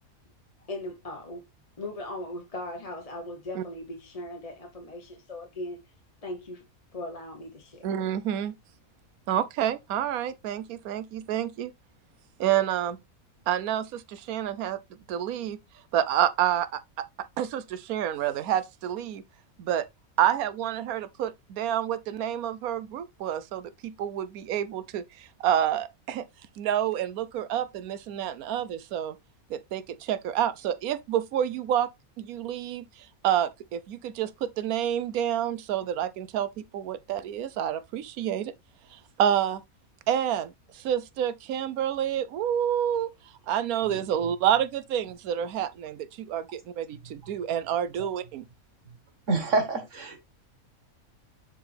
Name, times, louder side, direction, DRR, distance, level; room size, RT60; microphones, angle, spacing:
voice 1, 0.7-1.4 1.8-5.8 6.2-6.6 6.9-7.9, left 1 dB, 30° left, 1.0 m, -38 dB
voice 2, 7.8-8.5 9.3-11.7 12.4-13.0 13.5-14.8 15.1-15.6 15.9-17.0 17.4-19.2 19.6-19.8 20.2-26.2 26.6-29.2 29.5-31.9 32.2-32.8 33.2-38.5 38.9-39.6 40.1-43.1 43.5-48.4, right 10 dB, 80° right, 1.1 m, -28 dB
voice 3, 49.3-50.2, right 3 dB, 60° right, 1.8 m, -26 dB
7.4 x 4.8 x 3.3 m
omnidirectional pair, 1.5 m